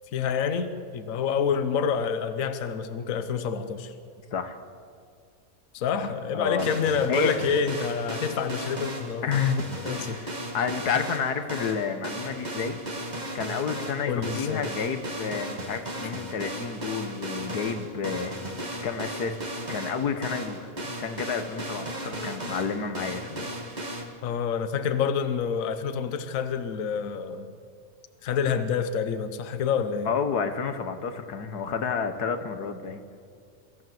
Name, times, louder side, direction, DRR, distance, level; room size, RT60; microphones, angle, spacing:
voice 1, 0.1-3.9 5.7-9.3 9.8-10.2 14.1-14.7 24.2-27.5 28.2-30.1, left 6 dB, 60° left, 10 dB, 1.3 m, -27 dB
voice 2, 6.3-6.7 7.1-7.3 9.2-9.6 10.0-12.8 13.3-18.3 18.8-19.4 19.7-24.0 30.1-33.0, left 6 dB, 85° left, 8 dB, 1.8 m, -30 dB
sound 1, 6.6-24.0, right 1 dB, 25° right, 1.9 m, -36 dB
23.5 x 15.0 x 7.8 m, 2.3 s
omnidirectional pair, 1.6 m